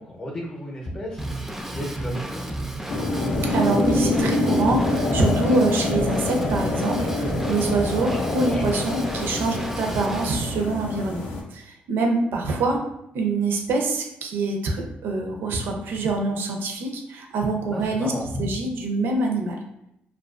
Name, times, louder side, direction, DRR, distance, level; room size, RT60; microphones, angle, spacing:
voice 1, 0.0-1.4 1.7-2.5 8.0-8.8 17.7-18.5, equal, 35° left, -2 dB, 0.6 m, -33 dB
Drum kit / Drum, 1.2-10.4, right 1 dB, 5° right, 0.3 m, -32 dB
sound 1, 2.9-11.4, left 2 dB, 80° left, 0.4 m, -25 dB
voice 2, 3.5-11.2 11.5-12.8 13.1-18.1 18.4-19.6, right 3 dB, 75° right, 2 dB, 0.4 m, -25 dB
2.3 x 2.2 x 2.3 m, 0.80 s
cardioid pair, 75°, 4 cm